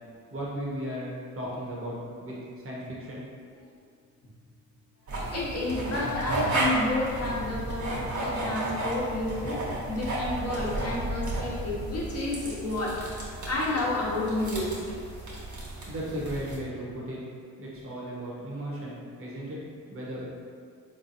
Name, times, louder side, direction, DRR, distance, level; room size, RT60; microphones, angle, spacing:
voice 1, 0.3-2.4 2.6-3.2 15.9-17.2 17.6-19.6 19.9-20.3, equal, 40° right, -5 dB, 1.1 m, -35 dB
sound 1, 5.1-16.6, right 2 dB, 55° right, 1.3 m, -33 dB
voice 2, 5.3-9.6 9.9-13.0 13.5-14.8, left 2 dB, 40° left, -5 dB, 1.1 m, -30 dB
3.8 x 3.2 x 2.7 m, 2.2 s
supercardioid pair, 55°, 36 cm